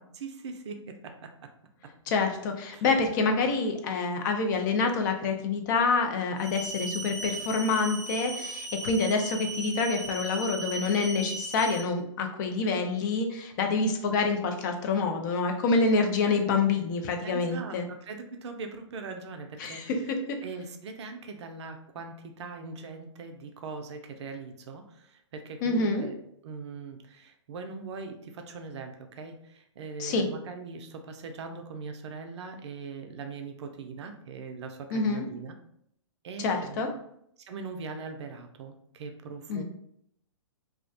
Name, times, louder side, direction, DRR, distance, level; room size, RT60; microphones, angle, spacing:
voice 1, 0.1-1.5 2.7-2.8 17.2-20.1 20.4-26.1 26.4-35.5 36.2-36.9 37.4-39.6, right 4 dB, 65° right, 5 dB, 0.4 m, -41 dB
voice 2, 2.1-17.9 19.6-20.4 25.6-26.1 30.0-30.3 34.9-35.3 36.4-36.9 39.5-39.6, left 4 dB, 40° left, 4 dB, 0.4 m, -27 dB
sound 1, 6.4-11.8, right 2 dB, 65° left, 0.9 m, -37 dB
2.3 x 2.1 x 2.6 m, 0.72 s
hypercardioid pair, 130°, 16 cm